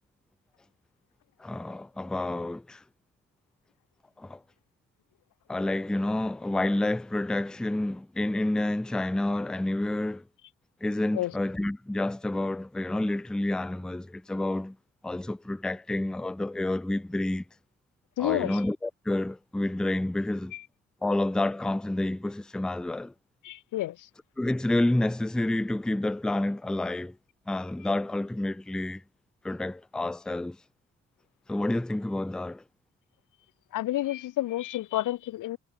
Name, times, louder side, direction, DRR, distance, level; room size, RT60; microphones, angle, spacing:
voice 1, 1.4-2.8 4.2-4.4 5.5-10.2 10.8-14.8 15.0-17.4 18.2-20.5 21.0-23.1 24.4-27.2 27.5-29.0 29.4-30.6 31.5-32.6, left 1 dB, ahead, 0.4 m, -29 dB
voice 2, 18.2-18.6 20.5-20.6 23.4-24.0 33.7-35.6, left 15 dB, 75° left, 0.6 m, -29 dB
cardioid pair, 125°, 32 cm